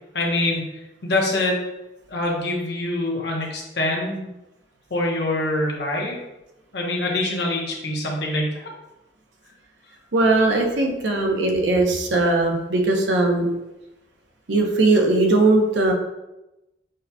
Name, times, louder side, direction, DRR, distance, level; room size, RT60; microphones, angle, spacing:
voice 1, 0.1-0.6 1.0-1.6 2.1-4.3 4.9-6.2 6.7-8.6, left 2 dB, 60° left, -2 dB, 0.9 m, -24 dB
voice 2, 10.1-13.5 14.5-15.9, right 2 dB, 75° right, 1 dB, 0.7 m, -19 dB
6.3 x 2.8 x 2.2 m, 0.97 s
head